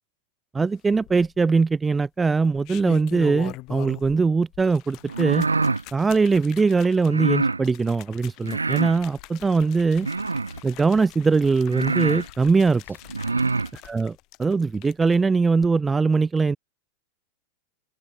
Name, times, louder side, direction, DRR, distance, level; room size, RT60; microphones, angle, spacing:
voice 1, 0.5-5.5 5.9-10.1 10.6-12.8 13.9-16.6, right 4 dB, 15° right, 0.3 m, -21 dB
sound 1, 0.9-1.6 2.4-4.2 4.5-15.2 15.5-15.7, left 21 dB, 40° left, 4.1 m, -43 dB
sound 2, 5.1-5.8 7.1-7.6 8.4-9.0 10.0-10.6 11.3-11.4 11.7-12.3 13.1-13.7, right 3 dB, 80° right, 0.8 m, -25 dB
open air
figure-of-eight pair, 90°, 0 cm